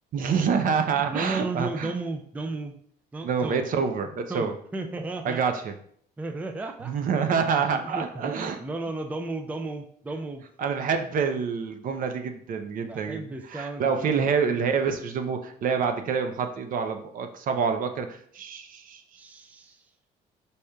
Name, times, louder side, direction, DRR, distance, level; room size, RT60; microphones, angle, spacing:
voice 1, 0.1-1.9 3.2-4.5 5.2-5.7 6.9-8.6 10.6-19.0, right 6 dB, 55° right, 7 dB, 0.6 m, -27 dB
voice 2, 0.8-2.8 3.1-3.6 4.3-5.4 6.2-10.4 12.8-14.5 19.2-19.9, right 2 dB, 10° right, 6 dB, 0.3 m, -34 dB
5.0 x 4.1 x 2.3 m, 0.63 s
cardioid pair, 110°, 17 cm